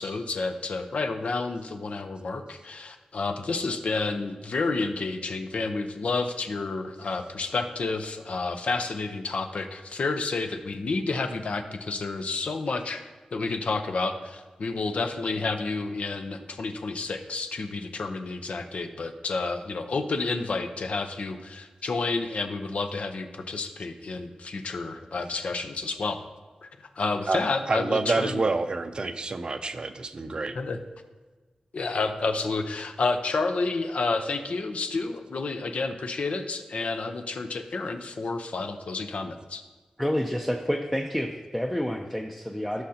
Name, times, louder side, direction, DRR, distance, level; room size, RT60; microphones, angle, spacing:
voice 1, 0.0-26.2 26.6-28.4 30.5-30.8 31.7-39.6, left 3 dB, 65° left, 7 dB, 0.8 m, -30 dB
voice 2, 27.7-30.6, right 3 dB, 40° right, 9 dB, 0.5 m, -28 dB
voice 3, 40.0-42.8, equal, 5° left, 1 dB, 0.6 m, -29 dB
15.5 x 6.5 x 2.9 m, 1.3 s
wide cardioid pair, 125°, 2 cm